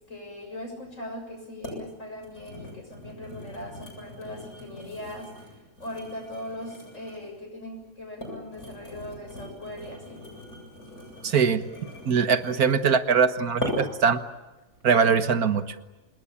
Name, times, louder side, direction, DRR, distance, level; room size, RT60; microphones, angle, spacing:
voice 1, 0.1-5.5 5.8-10.2, left 1 dB, 55° left, 3 dB, 7.0 m, -40 dB
sound 1, 0.8-0.9 1.6-1.8 2.2-7.4 8.0-12.9 13.6-14.1 14.6-14.8, left 1 dB, 75° left, 8.7 m, -40 dB
voice 2, 11.2-11.6 12.1-14.2 14.8-15.6, right 6 dB, 80° right, 10 dB, 1.8 m, -22 dB
27.0 x 20.5 x 8.6 m, 1.1 s
omnidirectional pair, 1.6 m